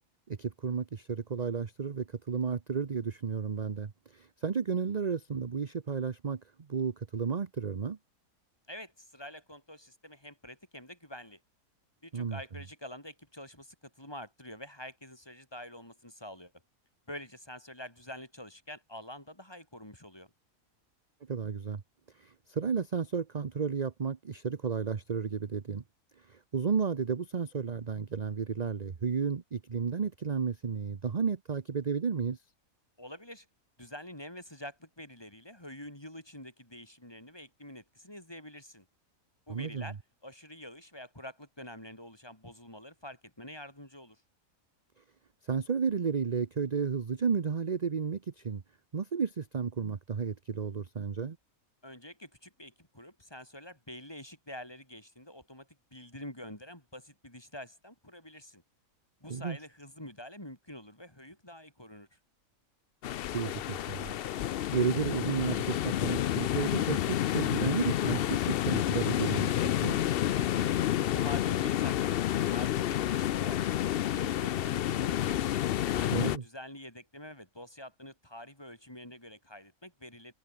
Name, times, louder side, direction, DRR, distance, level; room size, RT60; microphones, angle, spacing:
voice 1, 0.3-8.0 12.1-12.4 21.3-21.8 22.2-25.8 26.3-32.4 39.5-39.9 45.5-48.6 48.9-51.4 59.3-59.6 63.3-64.1 64.7-69.5 69.8-70.0 76.1-76.4, right 6 dB, 35° right, 0.9 m, -32 dB
voice 2, 8.7-11.4 12.0-16.5 17.1-20.3 33.0-33.5 33.8-38.9 39.5-40.0 40.2-44.2 51.8-58.6 59.2-62.2 70.4-75.6 75.9-80.3, left 1 dB, 15° left, 4.9 m, -47 dB
sound 1, 63.0-76.4, left 12 dB, 65° left, 0.6 m, -29 dB
omnidirectional pair, 1.5 m